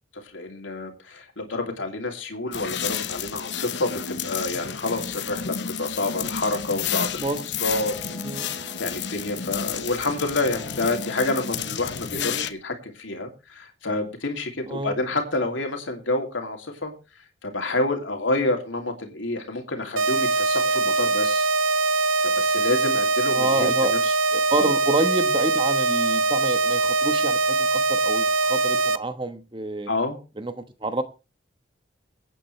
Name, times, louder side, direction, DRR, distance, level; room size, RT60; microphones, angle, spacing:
voice 1, 0.3-8.2 8.8-16.9 17.4-21.4 22.2-24.0 24.6-24.7 29.9-30.2, left 2 dB, 80° left, 4 dB, 2.7 m, -28 dB
sound 1, 2.5-12.5, left 8 dB, 65° left, 0.9 m, -31 dB
sound 2, 7.8-10.2 10.5-12.5, equal, 5° right, 6.0 m, -47 dB
voice 2, 12.1-12.5 14.7-15.0 23.3-23.9 24.3-29.9 30.4-31.0, right 2 dB, 25° right, 10 dB, 1.2 m, -28 dB
sound 3, 20.0-29.0, right 3 dB, 90° right, 0.9 m, -22 dB
23.0 x 9.0 x 3.2 m, 0.31 s
head